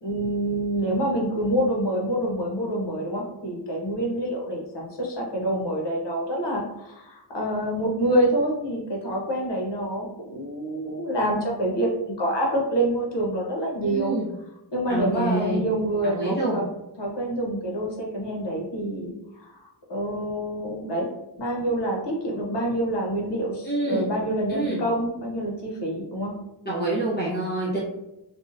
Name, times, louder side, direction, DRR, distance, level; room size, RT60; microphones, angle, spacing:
voice 1, 0.0-14.1 14.7-16.7 17.0-19.5 19.9-21.1 21.4-26.3, right 1 dB, 65° left, -1 dB, 0.8 m, -27 dB
voice 2, 13.8-14.3 14.9-15.6 16.0-16.6 23.6-24.0 24.5-24.8 26.7-27.8, right 2 dB, 20° left, -7 dB, 0.7 m, -26 dB
2.6 x 2.1 x 2.5 m, 0.90 s
wide cardioid pair, 60°, 45 cm